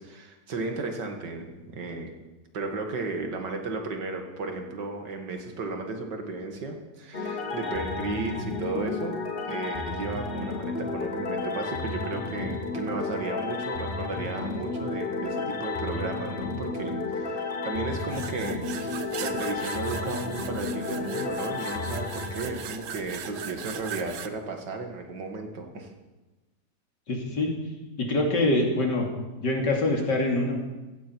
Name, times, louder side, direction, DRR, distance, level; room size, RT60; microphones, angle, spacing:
voice 1, 0.0-2.1 2.5-9.2 9.4-25.9, right 3 dB, 90° right, 4 dB, 2.5 m, -34 dB
sound 1, 7.1-23.2, left 3 dB, 35° left, 1.4 m, -32 dB
sound 2, 18.0-24.3, right 8 dB, 55° right, 1.0 m, -39 dB
voice 2, 27.1-27.5 28.0-29.1 29.4-30.6, left 2 dB, 90° left, 0 dB, 3.3 m, -24 dB
16.0 x 15.0 x 4.6 m, 1.1 s
omnidirectional pair, 1.8 m